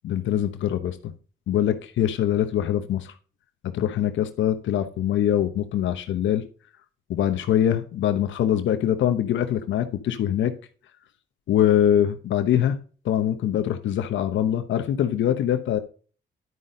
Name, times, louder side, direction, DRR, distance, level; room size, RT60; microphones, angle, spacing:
voice 1, 0.0-1.1 1.5-3.1 3.6-6.4 7.1-10.5 11.5-12.8 13.0-15.8, left 10 dB, 75° left, 0.9 m, -23 dB
11.0 x 5.5 x 3.8 m
cardioid pair, 90°, 20 cm